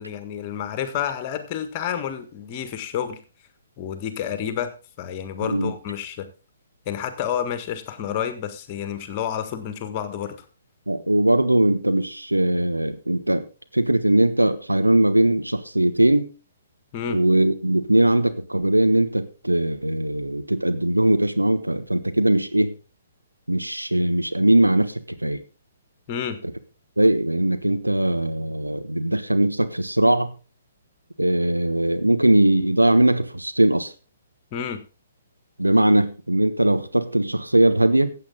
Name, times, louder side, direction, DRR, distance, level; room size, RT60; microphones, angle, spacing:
voice 1, 0.0-3.2 3.8-4.7 5.0-6.3 6.8-10.4 16.9-17.2 26.1-26.4 34.5-34.8, left 9 dB, 30° left, 10 dB, 1.6 m, -29 dB
voice 2, 5.4-5.7 10.9-13.4 13.7-16.3 17.1-22.7 23.5-25.4 27.0-30.3 31.2-33.9 35.6-38.1, right 1 dB, 85° right, 9 dB, 1.2 m, -20 dB
15.0 x 8.1 x 3.9 m, 0.34 s
figure-of-eight pair, 125°, 0 cm